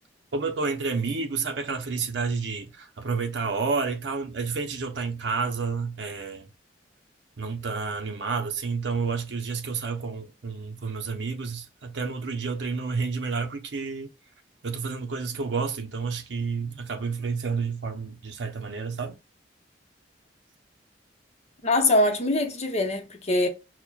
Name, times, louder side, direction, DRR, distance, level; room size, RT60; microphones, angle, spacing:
voice 1, 0.3-6.5 7.4-14.1 14.6-19.2, right 4 dB, 70° right, 0.6 m, -30 dB
voice 2, 21.6-23.5, left 2 dB, 35° left, 0.7 m, -23 dB
5.8 x 2.1 x 2.2 m
head